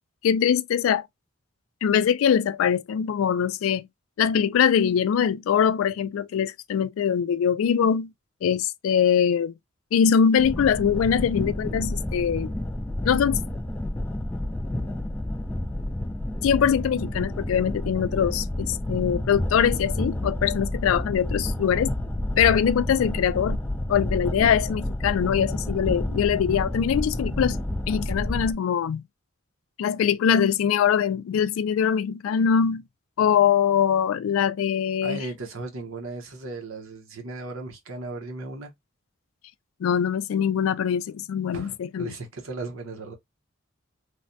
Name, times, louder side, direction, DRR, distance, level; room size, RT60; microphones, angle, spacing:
voice 1, 0.2-1.0 1.8-3.9 4.2-8.1 8.4-9.5 9.9-12.5 13.0-13.4 16.4-21.9 22.4-23.6 23.9-27.6 27.9-29.0 29.8-32.8 33.2-35.2 39.8-42.1, left 8 dB, 90° left, 0.3 m, -22 dB
sound 1, 10.4-28.5, left 1 dB, 10° left, 0.3 m, -30 dB
voice 2, 35.0-38.7 41.5-43.1, right 3 dB, 90° right, 0.9 m, -36 dB
3.2 x 2.1 x 2.6 m
head